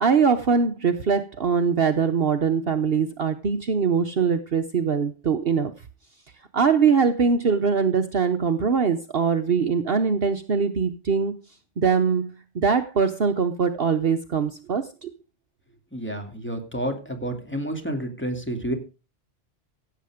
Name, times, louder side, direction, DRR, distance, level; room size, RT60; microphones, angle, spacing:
voice 1, 0.0-5.7 6.5-11.3 11.8-15.1, right 6 dB, 55° right, 9 dB, 1.1 m, -22 dB
voice 2, 15.9-18.7, right 1 dB, 10° left, 4 dB, 2.9 m, -30 dB
16.5 x 8.5 x 5.0 m, 0.32 s
omnidirectional pair, 1.2 m